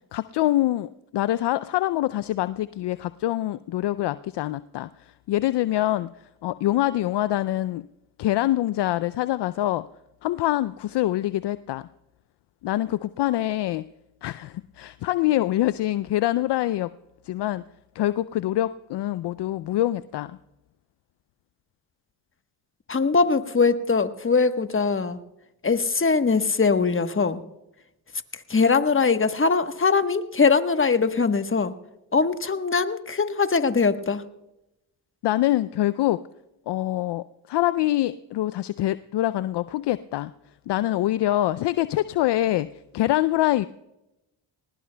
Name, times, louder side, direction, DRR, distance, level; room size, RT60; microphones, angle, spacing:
voice 1, 0.1-7.9 8.2-9.9 10.2-11.9 12.6-13.9 14.2-16.9 17.2-17.6 17.9-20.4 35.2-36.2 36.7-40.3 40.7-43.7, left 14 dB, 55° left, 15 dB, 0.5 m, -25 dB
voice 2, 22.9-25.2 25.6-27.4 28.5-31.7 32.1-34.2, left 4 dB, 25° left, 10 dB, 1.2 m, -21 dB
21.0 x 19.5 x 2.2 m, 0.91 s
supercardioid pair, 45°, 50 cm